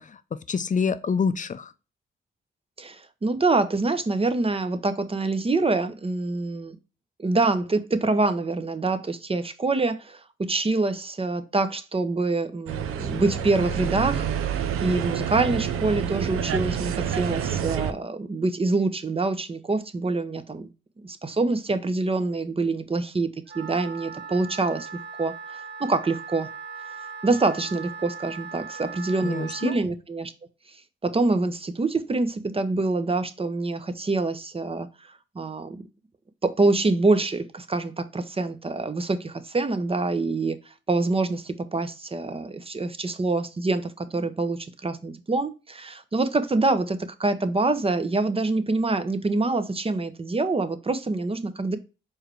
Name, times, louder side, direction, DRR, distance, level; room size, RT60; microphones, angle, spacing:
voice 1, 0.0-1.7 29.2-29.8, left 5 dB, 35° left, 0.6 m, -27 dB
voice 2, 2.8-6.8 7.2-20.7 21.0-23.3 23.5-26.5 27.2-30.3 31.0-35.8 36.4-51.8, right 3 dB, 25° right, 0.8 m, -26 dB
sound 1, 12.7-17.9, right 8 dB, 90° right, 0.5 m, -28 dB
Wind instrument woodwind instrument, 23.5-29.8, right 6 dB, 55° right, 1.0 m, -39 dB
4.6 x 3.2 x 3.2 m
cardioid pair, 65°, 21 cm